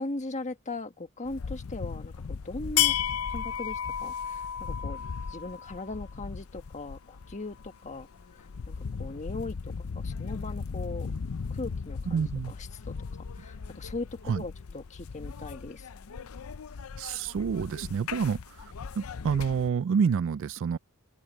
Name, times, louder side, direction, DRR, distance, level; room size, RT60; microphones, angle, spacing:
voice 1, 0.0-2.9 3.3-5.0 5.3-8.1 8.3-11.1 11.5-12.9 13.3-15.9, left 2 dB, 35° left, 1.5 m, -39 dB
sound 1, 1.2-19.7, left 8 dB, 75° left, 0.5 m, -35 dB
voice 2, 12.1-12.5 14.3-14.4 17.0-18.4 19.0-20.8, right 6 dB, 60° right, 0.3 m, -28 dB
open air
head